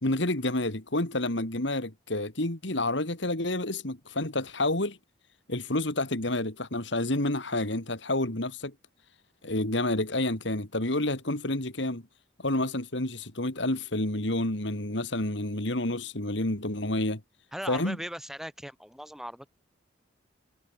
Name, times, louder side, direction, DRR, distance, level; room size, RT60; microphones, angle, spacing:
voice 1, 0.0-5.0 5.5-8.7 9.4-12.0 12.4-17.2 17.7-18.0, left 1 dB, 65° left, 2.9 m, -29 dB
voice 2, 17.5-19.5, equal, ahead, 3.5 m, -38 dB
head